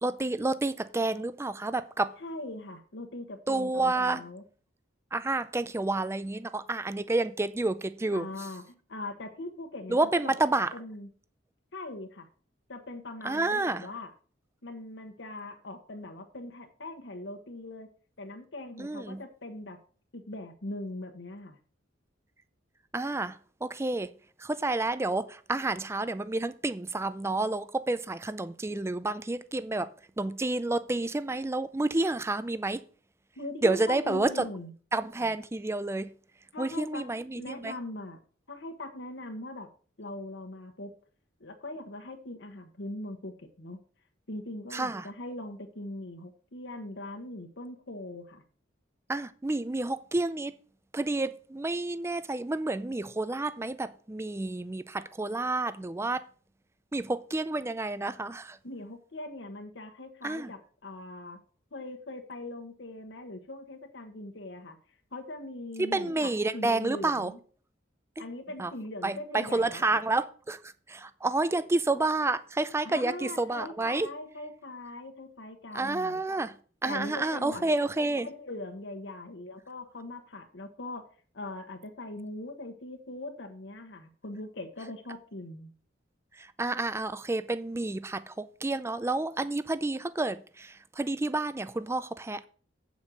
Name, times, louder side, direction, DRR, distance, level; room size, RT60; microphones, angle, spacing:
voice 1, 0.0-2.1 3.5-4.2 5.1-8.3 9.9-10.7 13.2-13.9 18.8-19.2 22.9-24.1 24.4-29.9 30.2-32.8 33.6-34.5 34.9-36.1 36.6-37.7 44.7-45.1 49.1-50.5 50.9-56.2 56.9-58.6 60.2-60.5 65.8-67.3 68.2-68.3 68.6-68.7 69.0-70.6 70.9-74.1 75.7-76.5 76.8-78.3 86.4-92.5, right 2 dB, 15° right, 0.4 m, -29 dB
voice 2, 2.2-4.4 8.1-10.0 10.2-10.4 10.7-11.1 11.7-12.3 12.7-14.1 14.6-17.9 18.2-19.8 20.1-21.6 33.4-34.7 36.5-37.1 37.3-38.2 38.5-39.7 40.0-40.9 41.4-43.8 44.3-48.4 58.6-61.4 61.7-64.8 65.1-67.4 68.2-70.0 72.8-76.2 76.8-77.6 78.2-81.1 81.3-85.7, left 2 dB, 65° left, 1.2 m, -41 dB
8.4 x 5.2 x 6.2 m
head